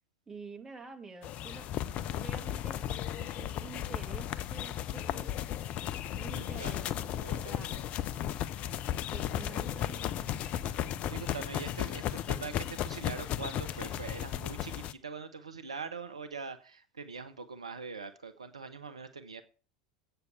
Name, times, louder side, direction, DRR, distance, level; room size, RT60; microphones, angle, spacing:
voice 1, 0.3-1.7 2.1-2.8 3.2-5.3 6.2-7.8 8.2-8.3 9.0-10.3, right 5 dB, 15° right, 2.1 m, -48 dB
sound 1, 1.2-14.9, left 11 dB, 45° left, 0.6 m, -35 dB
voice 2, 6.4-6.7 7.2-7.7 11.1-19.4, right 5 dB, 80° right, 0.7 m, -43 dB
8.2 x 6.7 x 6.8 m
figure-of-eight pair, 80°, 3 cm